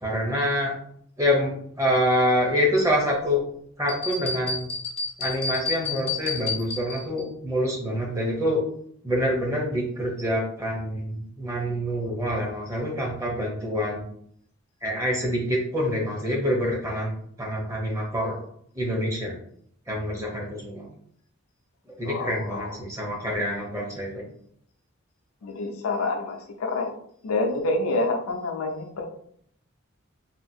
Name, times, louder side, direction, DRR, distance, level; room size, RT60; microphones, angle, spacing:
voice 1, 0.0-0.7 1.2-3.4 3.8-4.7 5.2-8.6 9.0-14.0 14.8-17.1 17.4-18.4 18.7-19.4 19.9-20.9 22.0-24.2, equal, 15° right, -2 dB, 0.7 m, -26 dB
sound 1, 3.9-7.2, left 4 dB, 25° left, 0.5 m, -31 dB
voice 2, 22.1-22.7 25.4-26.9 27.2-29.1, left 2 dB, 85° left, 4 dB, 0.5 m, -27 dB
2.8 x 2.4 x 2.6 m, 0.65 s
head